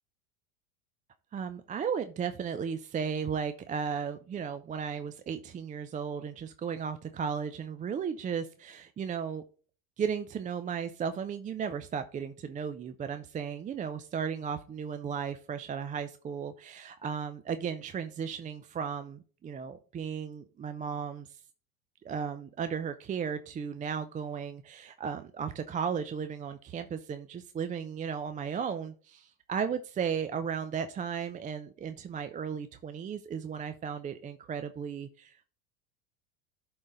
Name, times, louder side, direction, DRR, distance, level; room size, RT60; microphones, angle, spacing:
voice 1, 1.3-9.4 10.0-21.4 22.0-35.4, right 7 dB, 20° right, 10 dB, 0.5 m, -35 dB
11.5 x 3.9 x 3.9 m, 0.41 s
hypercardioid pair, 85°, 40 cm